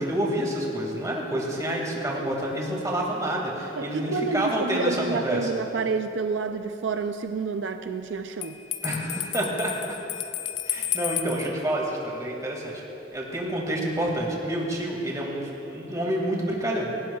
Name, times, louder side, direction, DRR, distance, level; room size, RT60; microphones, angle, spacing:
voice 1, 0.0-5.5 8.8-9.9 10.7-12.7 13.1-16.9, right 1 dB, 20° right, -2 dB, 2.2 m, -28 dB
voice 2, 3.8-8.6, right 4 dB, 80° right, 7 dB, 0.5 m, -29 dB
Bell, 8.4-11.5, left 12 dB, 90° left, 0.5 m, -32 dB
18.0 x 17.5 x 2.4 m, 2.9 s
head